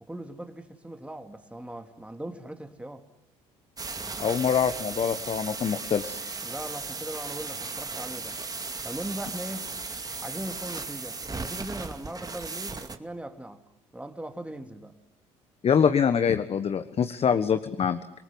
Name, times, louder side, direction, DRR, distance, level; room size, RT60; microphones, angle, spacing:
voice 1, 0.0-3.0 6.4-8.4 8.8-9.7 10.2-13.6 13.9-14.9 17.2-17.4, right 1 dB, 10° right, 3.0 m, -39 dB
sound 1, 3.8-13.0, right 4 dB, 25° right, 2.4 m, -36 dB
voice 2, 4.2-6.2 15.6-18.0, left 7 dB, 45° left, 1.4 m, -24 dB
27.5 x 19.0 x 9.7 m
hypercardioid pair, 65°, 15 cm